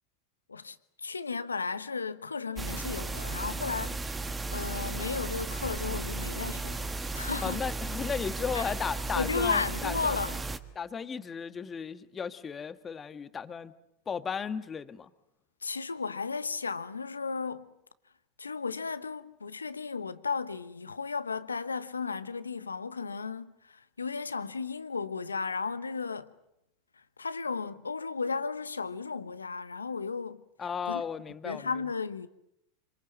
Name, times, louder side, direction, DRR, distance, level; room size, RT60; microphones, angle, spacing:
voice 1, 0.5-7.6 8.5-8.7 9.1-10.4 15.6-17.7 18.4-26.3 27.2-30.4 30.9-31.0 31.4-32.3, left 4 dB, 85° left, 1.1 m, -34 dB
sound 1, 2.6-10.6, right 2 dB, 15° right, 1.5 m, -35 dB
voice 2, 7.4-10.2 10.7-13.7 14.1-15.1 30.6-31.7, left 6 dB, 25° left, 1.5 m, -35 dB
26.5 x 25.0 x 7.7 m
figure-of-eight pair, 90°, 0 cm